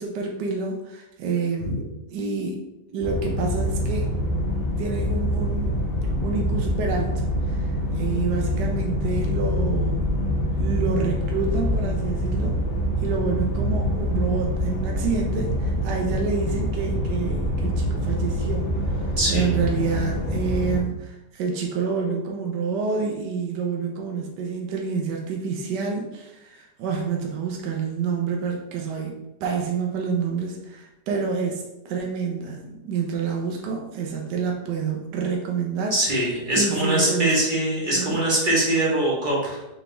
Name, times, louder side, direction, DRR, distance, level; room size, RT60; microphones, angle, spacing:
voice 1, 0.0-1.8 2.1-2.6 2.9-4.1 4.8-5.7 6.2-7.1 7.5-10.2 10.6-12.5 13.0-18.7 19.0-36.3 36.5-37.4 37.9-38.2, right 5 dB, 75° right, 0 dB, 1.2 m, -28 dB
sound 1, 3.0-20.8, equal, 60° left, 0.6 m, -25 dB
voice 2, 19.2-19.5 35.9-39.6, right 1 dB, 30° right, -5 dB, 1.1 m, -22 dB
4.1 x 3.4 x 3.3 m, 0.94 s
omnidirectional pair, 1.9 m